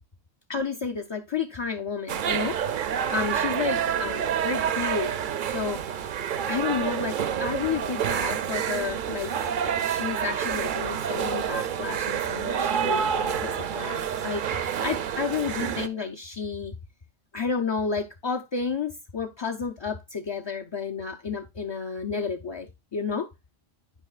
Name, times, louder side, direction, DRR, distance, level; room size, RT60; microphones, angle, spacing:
voice 1, 0.5-5.2 5.4-6.2 6.5-9.5 9.8-16.8 17.3-23.3, left 5 dB, 40° left, 0.4 m, -31 dB
sound 1, 2.1-15.9, right 8 dB, 60° right, 0.7 m, -28 dB
9.8 x 5.0 x 2.3 m
omnidirectional pair, 1.1 m